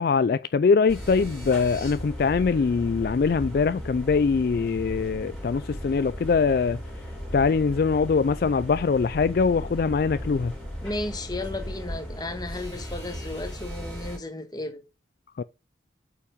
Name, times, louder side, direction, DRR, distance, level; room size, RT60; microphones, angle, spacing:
voice 1, 0.0-6.8 7.3-10.5 15.4-15.5, left 5 dB, 55° left, 0.3 m, -23 dB
sound 1, 0.9-14.2, equal, 5° left, 3.6 m, -36 dB
voice 2, 10.8-14.8, left 2 dB, 20° left, 1.5 m, -34 dB
8.3 x 5.5 x 5.0 m
head